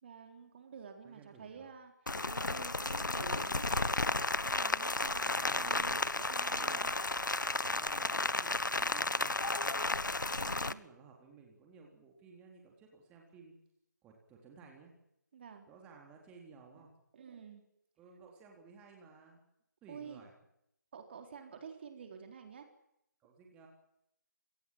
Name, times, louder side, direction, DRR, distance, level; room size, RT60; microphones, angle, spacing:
voice 1, 0.0-1.9 2.3-3.8 4.4-6.0 6.3-6.9 10.4-10.8 15.3-15.7 16.7-16.8 17.1-17.6 19.9-20.2 20.9-22.7, right 6 dB, 35° right, 5 dB, 3.8 m, -50 dB
voice 2, 1.0-1.7 5.2-7.0 7.5-9.9 10.4-13.5 14.0-14.9 15.7-16.9 18.0-19.4 19.8-20.3 23.2-23.7, right 5 dB, 10° right, 0 dB, 3.8 m, -56 dB
Rain, 2.1-10.7, left 2 dB, 80° left, 1.2 m, -33 dB
27.0 x 19.0 x 7.6 m, 0.79 s
figure-of-eight pair, 155°, 10 cm